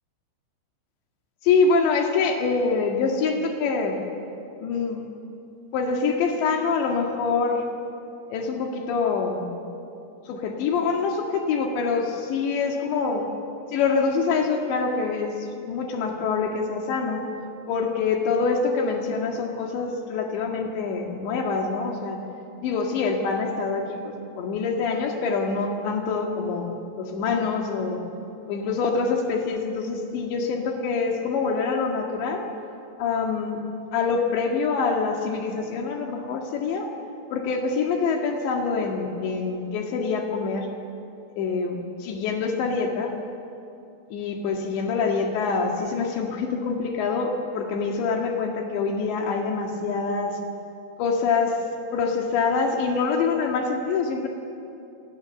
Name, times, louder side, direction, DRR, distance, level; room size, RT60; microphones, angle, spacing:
voice 1, 1.4-4.0 4.6-5.0 5.7-7.6 8.3-9.5 10.3-13.3 13.7-17.2 17.7-22.2 22.6-28.1 28.5-32.4 33.0-33.6 33.9-36.9 37.3-40.7 41.3-43.1 44.1-50.4 51.0-51.6 51.9-54.3, left 4 dB, 85° left, 2 dB, 4.3 m, -25 dB
29.0 x 28.0 x 7.2 m, 2.6 s
omnidirectional pair, 4.9 m